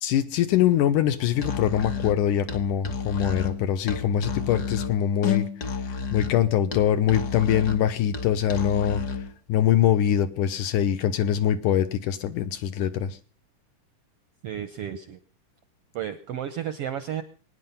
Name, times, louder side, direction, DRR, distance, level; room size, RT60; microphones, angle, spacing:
voice 1, 0.0-5.5 6.1-9.0 9.5-13.2, left 10 dB, 80° left, 2.4 m, -23 dB
Musical instrument, 1.3-9.3, left 6 dB, 45° left, 1.4 m, -31 dB
voice 2, 14.4-15.2 15.9-17.2, right 9 dB, 70° right, 1.4 m, -32 dB
23.0 x 9.9 x 5.6 m
omnidirectional pair, 3.8 m